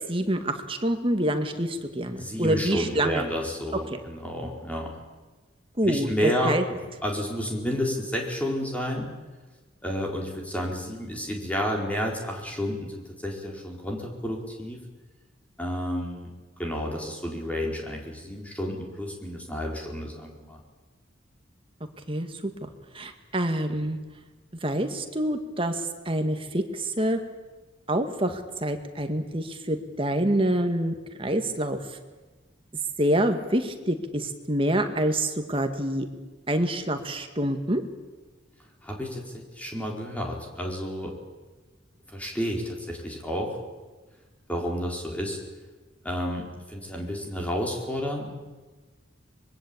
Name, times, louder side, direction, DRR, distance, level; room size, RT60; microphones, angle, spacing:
voice 1, 0.1-3.3 3.9-4.0 5.8-6.1 6.4-6.6 22.1-22.7 22.9-24.0 24.6-25.8 26.1-27.2 27.9-31.8 33.0-36.1 36.5-37.8, right 1 dB, 30° right, 6 dB, 2.0 m, -26 dB
voice 2, 2.2-4.9 5.8-9.1 9.8-14.8 15.6-20.6 38.8-41.1 42.1-43.6 44.5-45.4 46.0-48.3, equal, 5° left, -1 dB, 4.6 m, -31 dB
25.0 x 22.0 x 8.7 m, 1.3 s
head